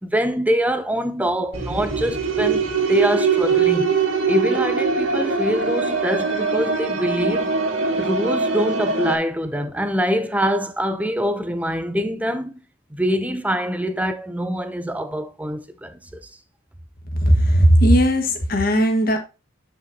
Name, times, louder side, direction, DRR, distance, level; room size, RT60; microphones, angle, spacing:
voice 1, 0.0-4.0 4.3-7.5 8.0-12.6 12.9-16.2, equal, 5° right, 0.6 m, -24 dB
sound 1, 1.5-9.2, right 5 dB, 80° right, 1.9 m, -22 dB
voice 2, 17.2-19.2, equal, 45° left, 1.7 m, -16 dB
9.6 x 5.4 x 2.9 m
head